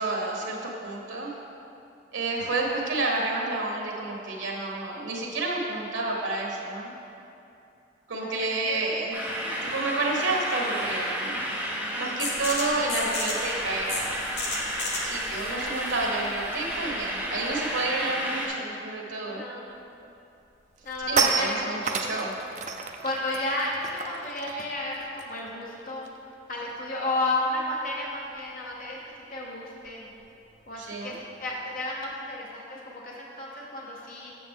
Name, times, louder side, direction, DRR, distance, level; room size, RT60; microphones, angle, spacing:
voice 1, 0.0-1.3 2.1-6.9 8.1-11.5 12.0-14.1 15.0-19.5 21.1-22.3 30.8-31.2, right 2 dB, 85° right, -1 dB, 1.3 m, -30 dB
voice 2, 8.2-8.8 12.2-12.4 15.5-15.8 19.3-19.8 20.8-21.5 21.7-22.2 23.0-26.1 26.5-29.0 29.3-30.1 30.7-31.1 31.4-34.3, left 2 dB, 45° left, -3 dB, 0.9 m, -32 dB
sound 1, 9.1-18.5, equal, 10° right, 0.9 m, -32 dB
sound 2, 12.2-17.7, left 3 dB, 65° left, 1.2 m, -35 dB
sound 3, 19.8-20.0 20.4-26.3 26.6-26.9 27.1-32.1, right 5 dB, 40° right, 0.4 m, -33 dB
7.6 x 7.0 x 3.6 m, 2.7 s
head